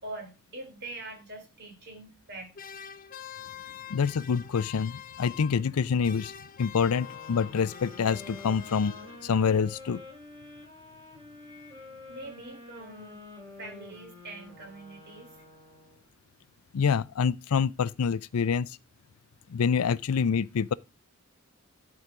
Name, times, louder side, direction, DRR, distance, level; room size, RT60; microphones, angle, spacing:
voice 1, 0.0-2.8 11.4-13.3 13.6-15.3, right 2 dB, 50° right, 3.2 m, -44 dB
sound 1, 2.5-5.8 6.0-9.4, left 9 dB, 40° left, 0.6 m, -45 dB
voice 2, 3.9-6.3 6.6-9.0 9.2-10.0 16.7-18.8 19.5-20.7, left 6 dB, 90° left, 0.5 m, -26 dB
sound 2, 6.8-16.1, left 2 dB, 25° right, 4.7 m, -48 dB
11.0 x 5.0 x 5.8 m
head